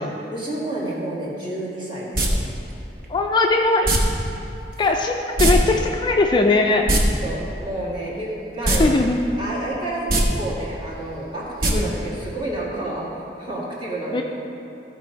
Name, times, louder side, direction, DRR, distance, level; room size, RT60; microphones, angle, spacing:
voice 1, 0.3-2.5 7.2-8.9 9.4-13.1 13.4-14.2, right 1 dB, 25° right, -6 dB, 1.9 m, -29 dB
sound 1, 2.1-2.3 3.8-4.0 5.4-5.5 5.8-5.9 6.7-7.0 8.6-8.8 9.2-9.3 10.0-10.2 11.6-11.7 12.0-12.1, right 1 dB, 55° right, 1.0 m, -19 dB
voice 2, 3.1-3.9 4.8-6.9 8.8-9.3 11.7-11.9 14.1-14.2, left 3 dB, 25° left, 2 dB, 0.4 m, -19 dB
13.5 x 4.6 x 4.4 m, 2.9 s
head